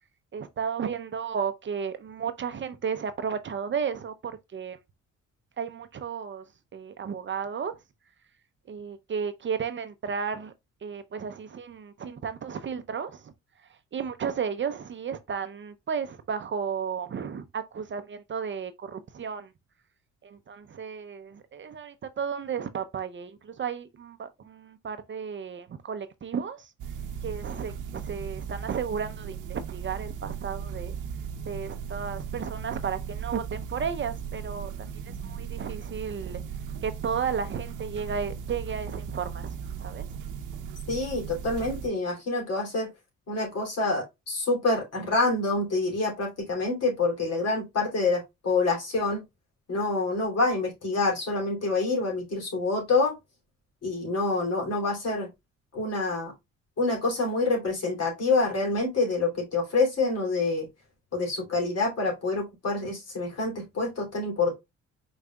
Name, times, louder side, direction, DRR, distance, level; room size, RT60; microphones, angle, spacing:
voice 1, 0.3-4.8 5.6-6.4 6.7-7.7 8.7-10.5 10.8-13.3 13.9-19.5 20.2-26.7 27.2-30.9 31.5-36.4 36.8-40.2, right 6 dB, 40° right, 0.6 m, -33 dB
sound 1, 26.8-41.9, right 7 dB, 85° right, 0.8 m, -37 dB
voice 2, 40.9-42.9 43.3-49.2 49.7-53.2 53.8-55.3 55.7-56.3 56.8-60.7 61.1-64.6, left 3 dB, 55° left, 2.8 m, -27 dB
5.0 x 4.0 x 2.2 m
cardioid pair, 90°, 30 cm